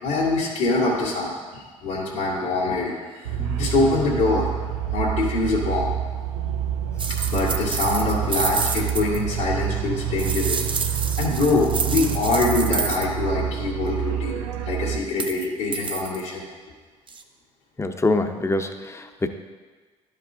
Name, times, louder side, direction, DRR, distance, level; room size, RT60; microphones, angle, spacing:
voice 1, 0.0-3.2 3.6-4.6 4.9-5.9 7.3-16.4, left 3 dB, 85° left, -9 dB, 2.0 m, -24 dB
sound 1, 3.2-15.0, right 10 dB, 90° right, 0.4 m, -28 dB
sound 2, 7.0-9.2 10.2-13.1 15.1-15.5 15.7-16.2 17.1-17.2, right 5 dB, 35° right, 0.7 m, -28 dB
voice 2, 17.8-19.3, left 2 dB, 20° left, 6 dB, 0.7 m, -25 dB
12.0 x 5.2 x 2.7 m, 1.4 s
hypercardioid pair, 60°, 15 cm